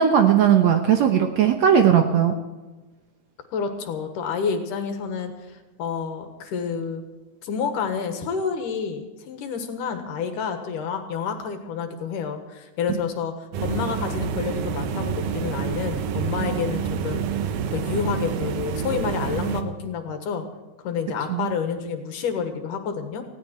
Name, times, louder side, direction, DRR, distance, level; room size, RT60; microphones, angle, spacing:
voice 1, 0.0-2.4 21.3-21.5, right 8 dB, 65° right, 5 dB, 1.9 m, -18 dB
voice 2, 3.5-7.0 7.4-17.3 17.7-20.5 20.8-23.2, left 6 dB, 70° left, 6 dB, 3.0 m, -29 dB
sound 1, 13.5-19.6, right 7 dB, 85° right, 2.9 m, -28 dB
19.0 x 16.5 x 4.5 m, 1.2 s
omnidirectional pair, 4.0 m